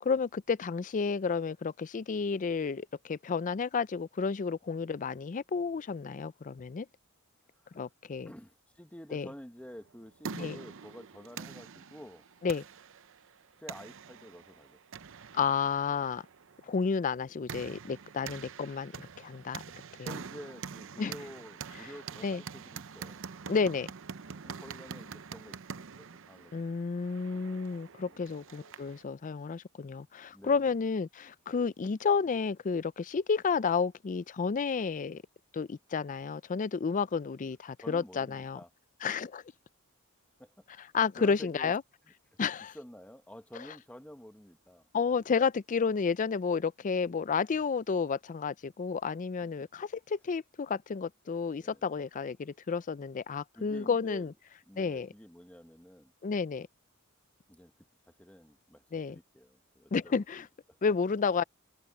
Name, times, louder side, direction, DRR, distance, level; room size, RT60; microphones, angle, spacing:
voice 1, 0.0-6.9 7.7-8.3 9.1-9.3 10.3-10.6 12.4-12.6 15.3-16.2 16.7-19.6 21.0-21.1 22.2-22.4 23.5-23.9 26.5-35.2 35.5-38.6 39.0-39.4 40.9-41.8 42.4-42.8 44.9-54.3 54.8-55.1 56.2-56.7 58.9-59.2 59.9-60.5 60.8-61.4, left 5 dB, 35° left, 0.4 m, -31 dB
voice 2, 7.5-7.9 8.2-12.2 13.6-15.0 20.0-23.3 24.4-26.7 28.1-28.4 30.3-30.8 37.8-38.7 40.4-40.8 41.2-41.7 42.7-44.9 51.6-51.8 53.5-54.3 54.7-56.1 57.5-57.7 58.0-60.8, equal, 5° left, 1.3 m, -50 dB
sound 1, 9.8-29.0, right 6 dB, 60° right, 0.7 m, -45 dB
head